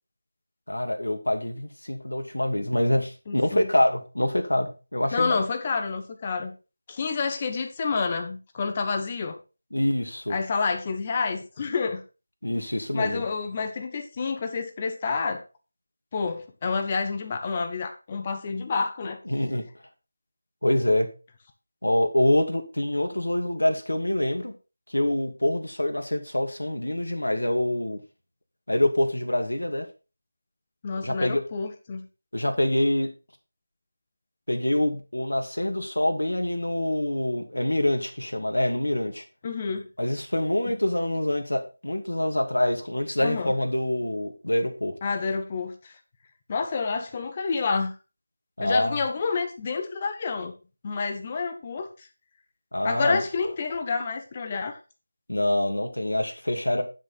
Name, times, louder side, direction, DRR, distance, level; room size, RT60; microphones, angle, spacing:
voice 1, 0.7-5.4 9.7-10.4 12.4-13.2 19.3-19.6 20.6-21.1 21.8-24.5 24.9-28.0 28.7-29.9 31.0-31.4 32.3-33.1 34.5-39.2 40.0-44.9 48.6-49.0 52.7-53.2 55.3-56.8, left 1 dB, 85° left, 2.5 m, -25 dB
voice 2, 3.3-3.7 5.1-6.5 6.9-9.4 10.3-12.0 12.9-15.4 16.1-19.2 30.8-32.1 39.4-39.9 43.2-43.5 45.0-45.9 46.5-47.9 48.6-50.5 50.8-52.1 52.8-54.8, left 4 dB, 25° left, 1.3 m, -29 dB
10.5 x 6.3 x 4.3 m
figure-of-eight pair, 170°, 0 cm